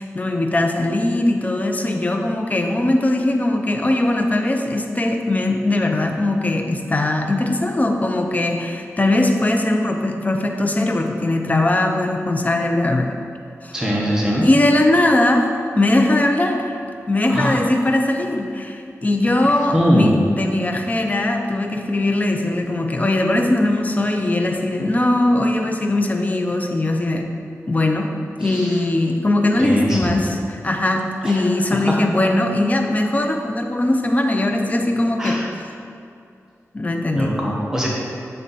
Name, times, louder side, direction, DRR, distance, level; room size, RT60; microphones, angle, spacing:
voice 1, 0.0-13.1 13.6-13.8 14.4-15.5 15.7-16.7 17.1-27.3 27.7-28.1 28.4-35.4 36.7-37.3, left 1 dB, 30° left, 3 dB, 0.6 m, -20 dB
voice 2, 13.7-14.4 17.3-17.6 19.7-20.2 28.4-28.8 29.6-30.0 31.2-31.4 35.2-35.4 37.2-37.9, equal, 10° right, -4 dB, 1.0 m, -21 dB
7.5 x 3.3 x 4.0 m, 2.5 s
wide cardioid pair, 85°, 5 cm